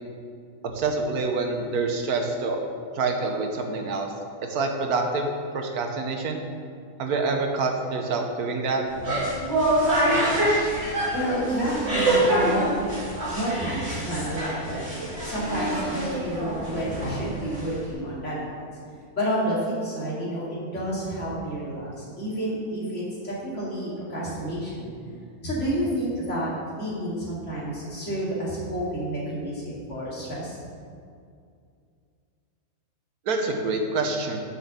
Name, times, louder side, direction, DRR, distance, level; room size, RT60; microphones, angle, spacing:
voice 1, 0.6-2.6 2.9-4.1 4.5-5.3 5.5-6.4 7.0-8.8 33.2-34.4, right 3 dB, 90° right, 3 dB, 1.5 m, -26 dB
sound 1, 8.9-17.9, right 1 dB, 45° right, 2.5 m, -26 dB
voice 2, 11.1-12.6 13.3-18.6 19.2-24.9 25.4-30.6, equal, 50° left, -7 dB, 2.9 m, -30 dB
6.9 x 6.0 x 6.7 m, 2.3 s
omnidirectional pair, 1.5 m